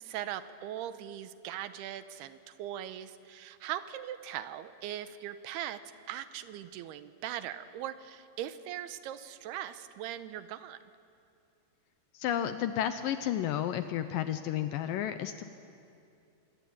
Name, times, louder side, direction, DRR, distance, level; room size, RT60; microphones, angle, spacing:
voice 1, 0.0-5.8 6.1-10.8, right 11 dB, 85° right, 12 dB, 2.9 m, -40 dB
voice 2, 12.1-15.4, left 11 dB, 75° left, 10 dB, 2.1 m, -32 dB
25.0 x 21.0 x 8.7 m, 2.5 s
omnidirectional pair, 4.6 m